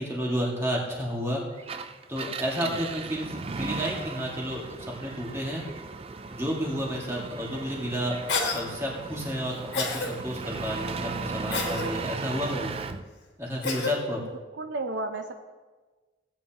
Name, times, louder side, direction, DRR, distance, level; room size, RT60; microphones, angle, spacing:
voice 1, 0.0-1.4 2.1-5.7 6.3-12.7 13.4-14.2, equal, 15° right, -3 dB, 2.0 m, -31 dB
Engine, 1.6-13.0, right 4 dB, 30° right, 0.4 m, -36 dB
Cough, 8.3-8.6 9.7-10.1 11.5-11.9 13.6-13.9, left 4 dB, 70° left, 1.8 m, -28 dB
voice 2, 14.6-15.3, right 2 dB, 75° right, 6 dB, 0.6 m, -34 dB
16.5 x 9.1 x 2.9 m, 1.3 s
head